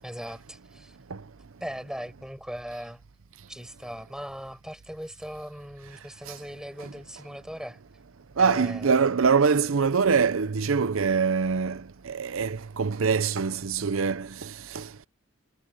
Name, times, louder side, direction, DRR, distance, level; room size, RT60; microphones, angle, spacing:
voice 1, 0.0-1.0 1.6-3.0 3.5-7.8 8.3-9.0, equal, 5° right, 7.5 m, -39 dB
voice 2, 8.4-14.8, right 5 dB, 75° right, 0.6 m, -24 dB
head